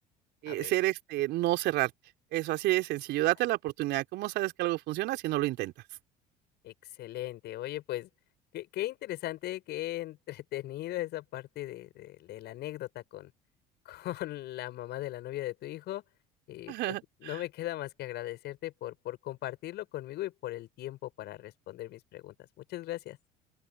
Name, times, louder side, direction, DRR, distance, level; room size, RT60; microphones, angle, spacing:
voice 1, 0.4-1.9 2.3-5.7 16.7-17.4, right 17 dB, 60° right, 3.6 m, -30 dB
voice 2, 6.6-8.1 8.5-13.3 13.8-16.0 16.5-23.2, left 15 dB, 60° left, 6.1 m, -38 dB
open air
hypercardioid pair, 65°, 20 cm